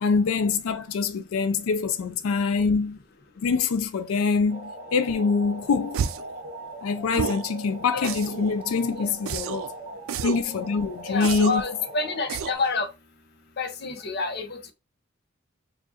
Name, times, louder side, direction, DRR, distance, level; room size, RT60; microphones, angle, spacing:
voice 1, 0.0-3.0 3.4-6.0 6.8-9.7 10.2-11.6, left 4 dB, 85° left, 0.4 m, -25 dB
sound 1, 4.5-12.5, right 1 dB, 35° right, 1.1 m, -40 dB
sound 2, 5.9-6.3 7.1-7.5 8.0-8.5 9.3-9.7 10.1-10.5 11.2-11.7 12.3-12.7, right 6 dB, 80° right, 0.4 m, -30 dB
voice 2, 11.1-12.9 13.6-14.6, left 3 dB, 50° left, 0.7 m, -28 dB
4.7 x 2.5 x 2.7 m
head